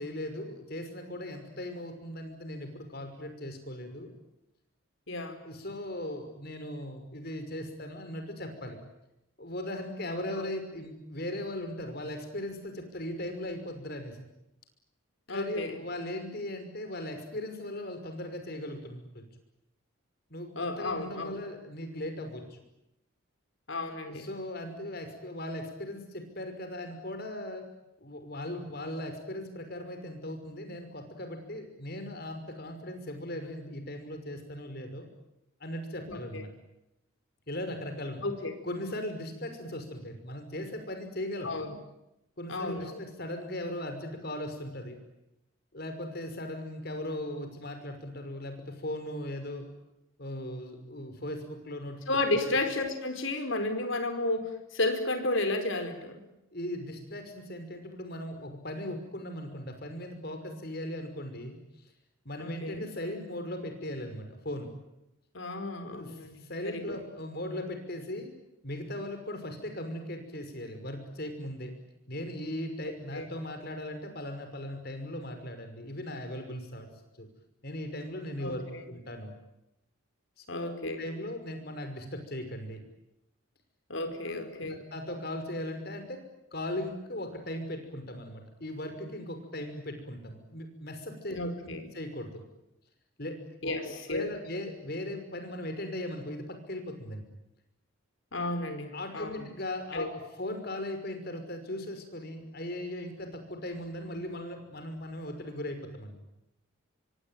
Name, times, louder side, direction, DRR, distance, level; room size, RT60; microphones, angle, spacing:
voice 1, 0.0-4.1 5.4-8.8 9.4-14.2 15.3-19.2 20.3-22.6 24.1-27.6 28.0-35.1 35.6-36.5 37.5-38.2 38.6-41.5 42.4-45.0 45.7-49.7 50.2-52.0 52.3-52.5 56.5-61.6 62.2-64.7 65.8-66.1 66.4-68.3 68.6-71.7 72.1-76.9 77.2-77.3 77.6-79.3 80.4-82.8 84.3-86.2 86.5-92.4 93.2-93.4 93.6-97.2 98.9-106.2, left 1 dB, 45° left, 7 dB, 5.8 m, -38 dB
voice 2, 5.1-5.4 10.3-10.5 15.3-15.8 20.5-21.4 23.7-24.3 36.1-36.4 38.2-38.5 41.4-41.8 42.5-43.0 52.1-56.2 62.4-62.9 65.3-67.0 73.1-73.3 78.4-78.8 80.5-81.0 83.9-84.8 91.3-91.9 93.6-94.2 98.3-99.5 99.9-100.1, left 2 dB, 65° left, 7 dB, 4.7 m, -33 dB
26.5 x 24.0 x 9.3 m, 0.88 s
head